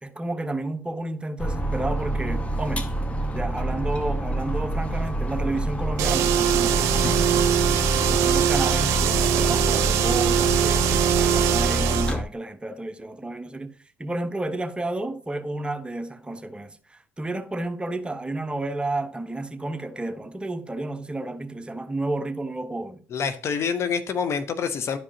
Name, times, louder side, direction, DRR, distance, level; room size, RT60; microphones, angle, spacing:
voice 1, 0.0-2.9 3.3-7.3 8.0-13.7 14.0-23.0, right 2 dB, 20° right, 0.9 m, -31 dB
sound 1, 1.4-12.2, right 1 dB, 25° left, 1.2 m, -27 dB
sound 2, 6.0-12.1, right 10 dB, 70° right, 0.7 m, -22 dB
voice 2, 23.1-25.0, left 6 dB, 55° left, 0.8 m, -26 dB
11.5 x 4.9 x 2.8 m
hypercardioid pair, 50°, 6 cm